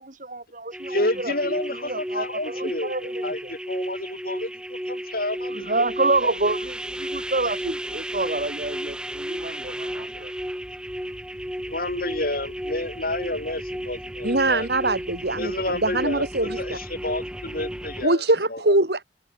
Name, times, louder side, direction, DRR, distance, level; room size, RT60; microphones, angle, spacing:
voice 1, 0.0-3.5 5.5-10.3, right 2 dB, 45° right, 2.2 m, -28 dB
sound 1, 0.7-18.1, equal, 5° right, 2.0 m, -33 dB
voice 2, 0.9-5.9 6.2-6.3 11.7-14.9 15.4-18.2 18.5-18.8, left 1 dB, 50° left, 5.3 m, -30 dB
voice 3, 14.2-16.8 18.0-19.0, right 2 dB, 65° right, 3.2 m, -23 dB
head